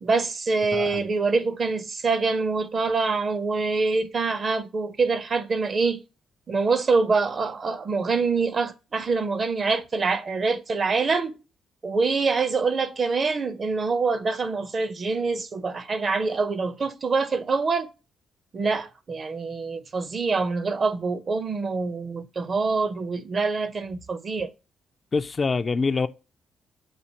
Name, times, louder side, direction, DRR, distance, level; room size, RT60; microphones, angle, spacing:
voice 1, 0.0-6.0 6.5-11.4 11.8-17.9 18.5-24.5, right 4 dB, 40° right, 0.6 m, -25 dB
voice 2, 0.7-1.0 25.1-26.1, left 4 dB, 35° left, 0.3 m, -25 dB
6.9 x 2.5 x 2.8 m
cardioid pair, 90°, 0 cm